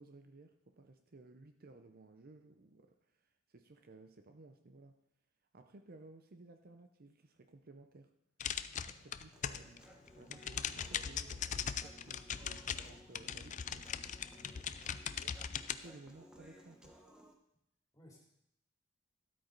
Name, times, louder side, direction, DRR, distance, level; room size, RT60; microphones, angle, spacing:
voice 1, 0.0-5.0 5.5-8.1 8.9-13.9 15.1-15.3 15.7-17.0, right 2 dB, 50° right, 6 dB, 0.7 m, -57 dB
sound 1, 8.4-9.8 10.1-15.7, left 8 dB, 40° left, 0.4 m, -40 dB
Human voice, 9.3-17.3, equal, 5° right, 1.1 m, -59 dB
voice 2, 14.3-14.6 15.1-15.3 17.9-18.2, equal, 15° left, -3 dB, 3.2 m, -60 dB
12.5 x 8.6 x 4.0 m, 0.79 s
head